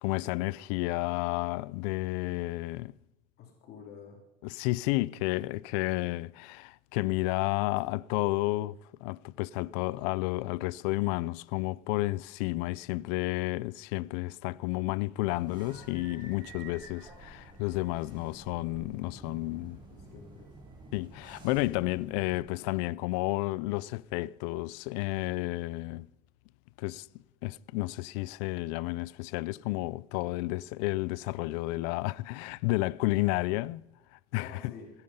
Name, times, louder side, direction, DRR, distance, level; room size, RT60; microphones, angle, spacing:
voice 1, 0.0-2.9 4.5-19.8 20.9-26.1 26.8-27.1 27.4-33.8 34.3-34.7, left 20 dB, 75° left, 0.4 m, -31 dB
voice 2, 3.4-4.2 19.9-20.5 34.3-34.9, left 6 dB, 50° left, 2.9 m, -49 dB
sound 1, 15.2-22.4, right 2 dB, 20° right, 5.4 m, -50 dB
17.0 x 9.1 x 5.5 m
supercardioid pair, 120°, 21 cm